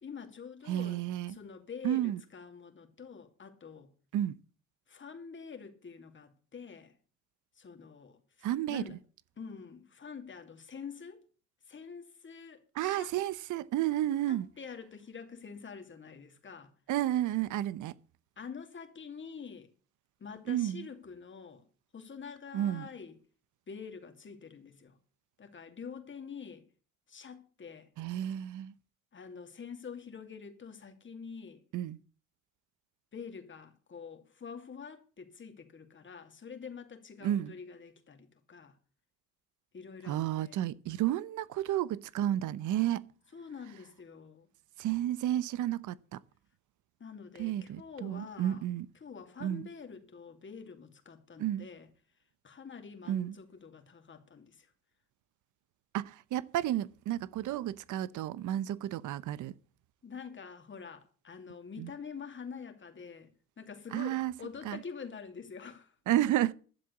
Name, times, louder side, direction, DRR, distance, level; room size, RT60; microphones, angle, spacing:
voice 1, 0.0-3.9 4.9-6.9 7.6-9.0 9.4-11.3 11.7-13.2 14.3-16.7 18.4-19.7 20.2-21.6 21.9-23.1 23.7-25.0 25.4-26.6 27.1-27.9 29.1-31.6 33.1-38.8 39.7-40.6 43.3-44.5 47.0-48.7 48.9-51.9 52.4-54.7 60.0-65.9, left 6 dB, 40° left, 2.6 m, -46 dB
voice 2, 0.7-1.4 1.8-2.2 4.1-4.3 8.4-8.8 12.8-14.5 16.9-17.9 20.5-20.9 22.5-22.9 28.0-28.7 31.7-32.0 37.2-37.5 40.1-43.1 44.8-46.2 47.4-48.9 49.4-49.7 51.4-51.7 53.1-53.3 55.9-59.5 61.8-61.9 63.9-64.3 64.6-64.8 66.1-66.5, right 12 dB, 80° right, 0.8 m, -31 dB
12.0 x 7.6 x 8.4 m
cardioid pair, 90°, 30 cm